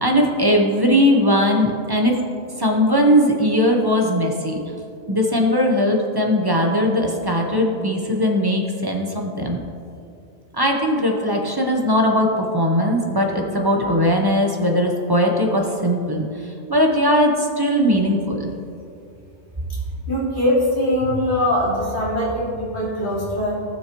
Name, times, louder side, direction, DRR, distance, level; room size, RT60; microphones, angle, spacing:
voice 1, 0.0-2.2 2.6-4.6 5.1-9.6 10.5-16.3 16.7-18.5, equal, 20° right, 1 dB, 1.0 m, -19 dB
voice 2, 20.1-23.6, left 1 dB, 45° left, -6 dB, 2.7 m, -22 dB
18.0 x 6.4 x 3.1 m, 2.5 s
omnidirectional pair, 1.2 m